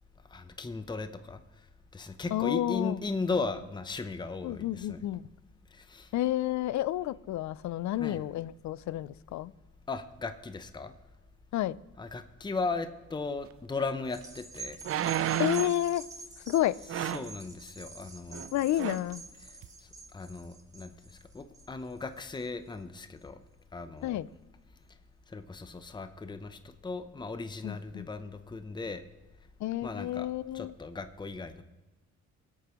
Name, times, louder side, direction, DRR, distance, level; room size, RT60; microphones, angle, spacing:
voice 1, 0.3-1.4 1.9-5.0 5.7-6.1 8.0-8.2 9.9-10.9 12.0-14.8 17.1-18.5 20.1-20.9 21.3-23.4 23.7-24.2 25.3-29.0 29.8-30.3 30.5-31.6, left 3 dB, 15° left, 10 dB, 0.7 m, -37 dB
voice 2, 2.3-3.0 4.4-5.2 6.1-9.5 11.5-11.8 15.4-16.0 16.5-16.8 18.5-19.2 24.0-24.3 27.6-28.1 29.6-30.7, left 14 dB, 65° left, 18 dB, 0.5 m, -30 dB
sound 1, 13.8-13.9 14.8-15.8 16.9-17.4 18.3-18.5 18.8-19.1 19.6-19.7, right 11 dB, 50° right, 0.5 m, -31 dB
sound 2, 14.0-22.7 23.2-23.3, right 4 dB, 10° right, 1.4 m, -47 dB
21.0 x 8.4 x 3.0 m, 1.1 s
cardioid pair, 90°, 30 cm